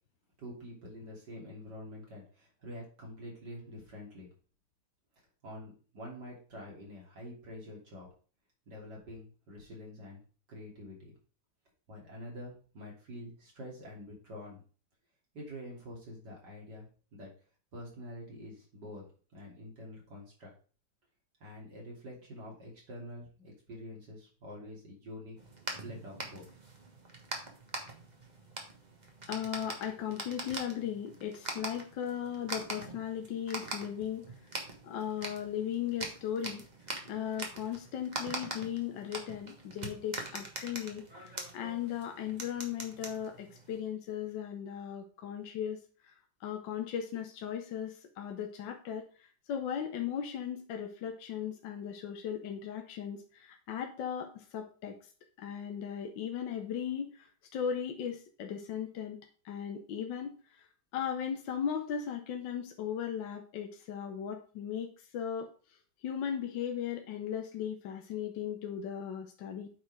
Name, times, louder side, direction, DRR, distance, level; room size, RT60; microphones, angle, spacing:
voice 1, 0.4-4.3 5.4-8.1 8.7-10.2 10.5-11.2 11.9-14.6 15.3-16.9 17.1-17.3 17.7-19.0 19.3-20.5 21.4-25.4 25.8-26.5, left 1 dB, 65° right, -2 dB, 3.4 m, -46 dB
sound 1, 25.4-43.8, right 2 dB, 25° right, 1.3 m, -43 dB
voice 2, 29.3-34.3 34.8-36.6 37.0-46.1 46.4-55.0 55.4-59.2 59.4-60.7 60.9-65.5 66.0-69.7, left 9 dB, 80° left, 4 dB, 1.6 m, -37 dB
8.4 x 4.1 x 4.8 m, 0.39 s
omnidirectional pair, 2.0 m